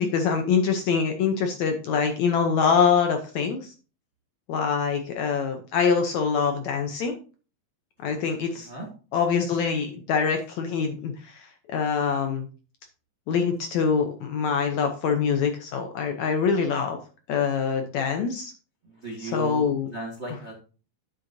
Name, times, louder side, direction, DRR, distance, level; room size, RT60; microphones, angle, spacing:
voice 1, 0.0-3.7 4.5-7.1 8.0-8.7 9.1-12.5 13.3-17.0 17.3-18.5 19.2-19.9, left 6 dB, 75° left, 5 dB, 1.7 m, -24 dB
voice 2, 8.6-8.9 18.8-20.5, right 2 dB, 80° right, -1 dB, 0.6 m, -36 dB
10.0 x 8.0 x 2.7 m, 0.36 s
omnidirectional pair, 4.1 m